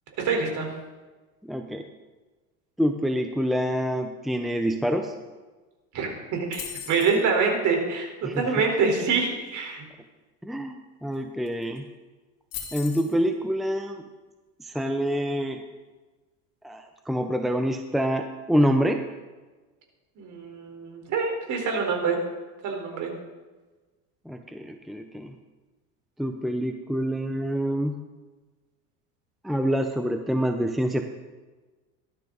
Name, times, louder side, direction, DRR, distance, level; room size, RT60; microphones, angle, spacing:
voice 1, 0.2-0.7 5.9-9.8 20.2-22.2 22.6-23.1, right 5 dB, 50° right, 2 dB, 4.2 m, -26 dB
voice 2, 1.4-1.8 2.8-5.1 8.2-8.6 10.4-11.8 12.7-14.0 14.6-15.6 16.6-19.0 24.3-25.4 26.2-27.9 29.4-31.0, equal, ahead, 5 dB, 0.7 m, -26 dB
sound 1, 6.5-7.2 11.1-11.2 11.5-11.8 12.5-13.1, left 9 dB, 60° left, 3.4 m, -38 dB
19.0 x 12.0 x 4.0 m, 1.3 s
supercardioid pair, 130°, 37 cm